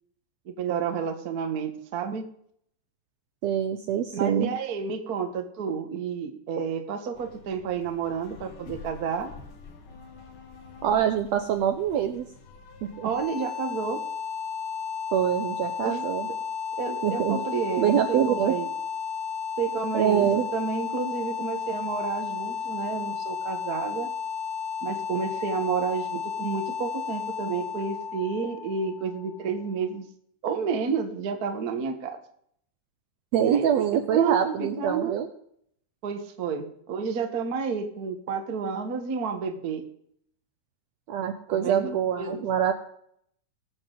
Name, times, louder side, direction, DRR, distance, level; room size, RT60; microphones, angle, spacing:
voice 1, 0.4-2.2 4.1-9.3 13.0-14.0 15.8-16.0 16.8-18.7 19.6-24.1 24.8-30.1 30.4-32.2 33.4-33.8 34.1-35.2 36.0-39.8 41.5-41.9 42.2-42.4, right 6 dB, 60° right, 6 dB, 0.9 m, -30 dB
voice 2, 3.4-4.5 10.8-12.2 12.8-13.1 15.1-16.3 17.0-17.4 17.8-18.5 19.9-20.5 33.3-35.3 41.1-42.7, right 9 dB, 75° right, 7 dB, 1.6 m, -25 dB
sound 1, 7.1-13.3, left 4 dB, 55° left, 1.5 m, -48 dB
sound 2, 12.9-29.9, left 6 dB, 80° left, 2.8 m, -33 dB
20.0 x 7.1 x 3.8 m, 0.68 s
omnidirectional pair, 3.7 m